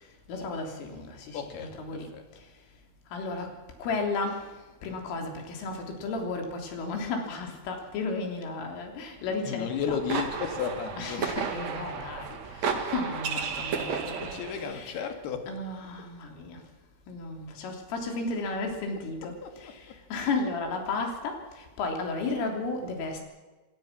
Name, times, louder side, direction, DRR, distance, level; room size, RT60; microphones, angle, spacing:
voice 1, 0.3-2.1 3.1-3.5 3.8-4.5 4.8-10.0 11.0-14.2 14.6-15.1 15.5-16.6 17.1-23.2, left 3 dB, 75° left, 3 dB, 5.9 m, -34 dB
voice 2, 1.3-2.3 9.4-11.3 13.1-13.7 14.2-15.6 19.0-20.0, left 7 dB, 60° left, 6 dB, 3.6 m, -35 dB
sound 1, 9.7-14.7, right 6 dB, 50° right, 2.2 m, -33 dB
27.0 x 18.0 x 6.1 m, 1.2 s
omnidirectional pair, 5.8 m